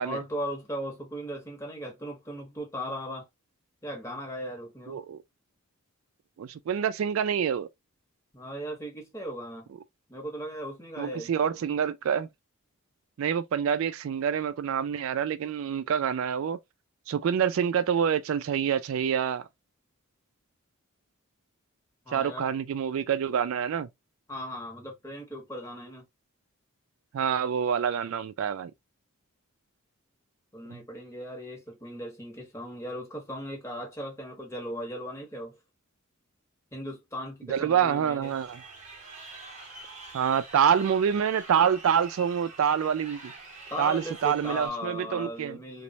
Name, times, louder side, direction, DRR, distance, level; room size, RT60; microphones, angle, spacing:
voice 1, 0.0-3.3 3.8-5.0 8.3-9.7 10.1-11.3 22.1-22.5 24.3-26.0 30.5-35.6 36.7-38.4 43.7-45.8, equal, 15° left, 0.8 m, -37 dB
voice 2, 4.9-5.2 6.4-7.7 11.0-12.3 13.2-16.6 17.1-19.4 22.1-23.9 27.1-28.7 30.7-30.8 37.5-38.6 40.1-43.3 43.8-45.6, right 8 dB, 65° right, 0.3 m, -26 dB
Crowd, 38.2-44.7, right 3 dB, 30° right, 0.7 m, -46 dB
3.0 x 2.1 x 2.6 m
head